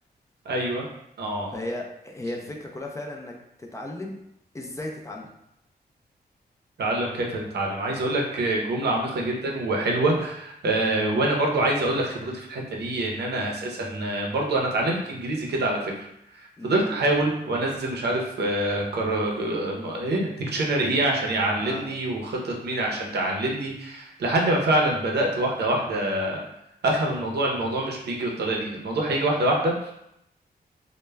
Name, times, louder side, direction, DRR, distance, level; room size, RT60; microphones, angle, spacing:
voice 1, 0.5-0.9 1.2-1.5 6.8-16.1 16.3-26.4 26.8-29.9, right 1 dB, 75° right, -1 dB, 0.6 m, -25 dB
voice 2, 1.5-3.3 3.6-4.2 4.5-5.3 16.6-16.8 21.6-21.9, left 1 dB, 20° left, 0 dB, 0.3 m, -35 dB
2.1 x 2.1 x 3.2 m, 0.80 s
wide cardioid pair, 115°, 17 cm